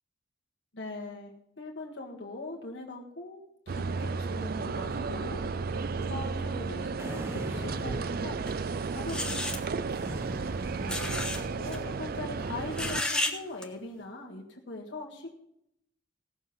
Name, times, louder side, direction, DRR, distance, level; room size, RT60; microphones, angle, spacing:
voice 1, 0.7-5.4 6.0-8.4 8.9-9.9 10.8-15.3, left 2 dB, 70° left, -2 dB, 1.7 m, -41 dB
sound 1, 3.7-13.0, right 4 dB, 55° right, 0.5 m, -33 dB
sound 2, 7.0-8.9 10.0-11.8, equal, 15° right, 0.9 m, -41 dB
Cloths hangers closet, 8.5-8.6 9.1-9.6 10.9-11.4 11.7-11.8 12.7-13.3 13.6-13.7, left 1 dB, 5° left, 1.2 m, -32 dB
17.5 x 7.0 x 5.7 m, 0.77 s
head